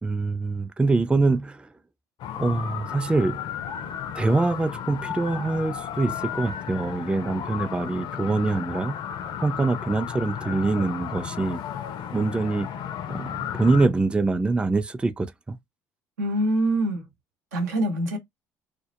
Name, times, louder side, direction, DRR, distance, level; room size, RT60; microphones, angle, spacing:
voice 1, 0.0-1.7 2.4-3.4 4.1-8.9 9.4-11.6 12.1-12.7 13.1-15.6, right 3 dB, 10° right, 0.3 m, -24 dB
sound 1, 2.2-13.9, left 9 dB, 60° left, 0.5 m, -34 dB
voice 2, 16.2-17.0 17.5-18.2, right 1 dB, 90° right, 0.8 m, -24 dB
2.1 x 2.0 x 2.8 m
hypercardioid pair, 60°, 9 cm